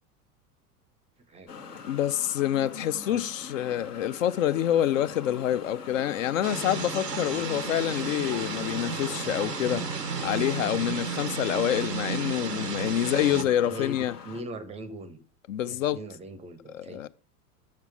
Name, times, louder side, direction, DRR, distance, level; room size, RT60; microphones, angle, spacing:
voice 1, 1.2-1.5 3.0-3.2 13.2-15.2 15.6-17.0, right 1 dB, 15° right, 0.5 m, -41 dB
sound 1, 1.5-14.4, left 5 dB, 75° left, 1.2 m, -42 dB
voice 2, 1.8-9.9 10.2-14.1 15.5-16.0 16.7-17.1, left 11 dB, 55° left, 0.5 m, -27 dB
sound 2, 6.4-13.4, right 5 dB, 90° right, 0.7 m, -33 dB
7.4 x 5.9 x 4.5 m
figure-of-eight pair, 80°, 47 cm